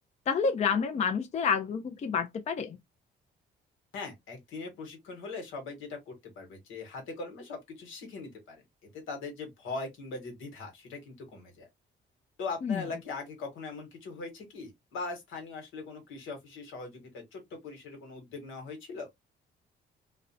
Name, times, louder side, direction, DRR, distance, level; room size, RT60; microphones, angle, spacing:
voice 1, 0.3-2.8 12.6-12.8, left 6 dB, 35° left, 0.4 m, -29 dB
voice 2, 3.9-11.7 12.4-19.1, left 3 dB, 85° left, 1.2 m, -41 dB
2.5 x 2.1 x 2.6 m
cardioid pair, 90°, 20 cm